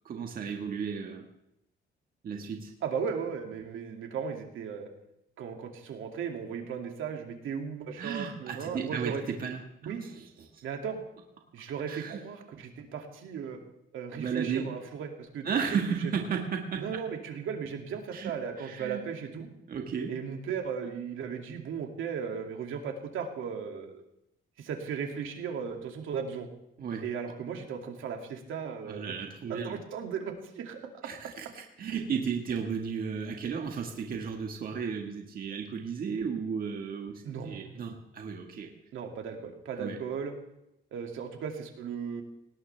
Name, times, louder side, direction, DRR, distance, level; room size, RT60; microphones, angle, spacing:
voice 1, 0.0-1.3 2.2-2.7 8.0-10.6 11.9-12.2 14.1-14.6 15.4-17.0 18.1-18.3 18.6-19.0 19.7-20.1 26.8-27.0 28.8-29.8 31.0-38.7 39.8-40.0, right 6 dB, 45° right, 2 dB, 1.6 m, -34 dB
voice 2, 2.8-4.9 5.4-9.2 9.8-10.0 10.6-11.0 11.5-13.6 13.9-15.5 15.9-16.1 16.8-19.5 20.1-24.0 24.6-26.5 27.0-29.1 29.5-31.1 37.2-37.9 38.9-40.3 40.9-42.2, right 6 dB, 80° right, 3 dB, 2.4 m, -36 dB
19.0 x 18.5 x 3.4 m, 0.83 s
cardioid pair, 175°, 20 cm